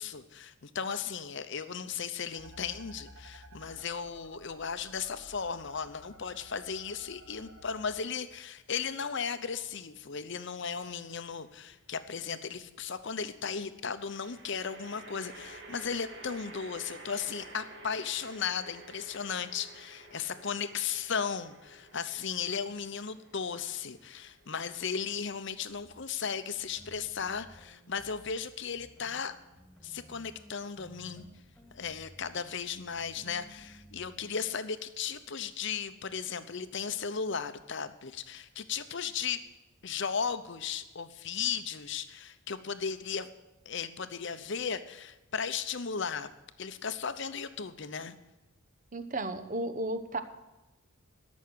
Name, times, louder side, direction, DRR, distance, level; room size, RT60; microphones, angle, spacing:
voice 1, 0.0-29.3 29.8-31.3 31.7-39.4 39.8-43.3 43.7-46.3 46.6-48.1, left 6 dB, 55° left, 11 dB, 0.8 m, -36 dB
sound 1, 2.3-8.0, equal, 70° right, 2.8 m, -53 dB
sound 2, 10.9-11.5 14.0-25.4, right 1 dB, 55° right, 2.0 m, -51 dB
sound 3, 25.7-26.0 26.5-28.4 28.7-34.4, equal, 5° left, 2.7 m, -56 dB
voice 2, 48.9-50.2, right 2 dB, 35° right, 9 dB, 0.9 m, -33 dB
13.0 x 6.3 x 9.4 m, 1.0 s
head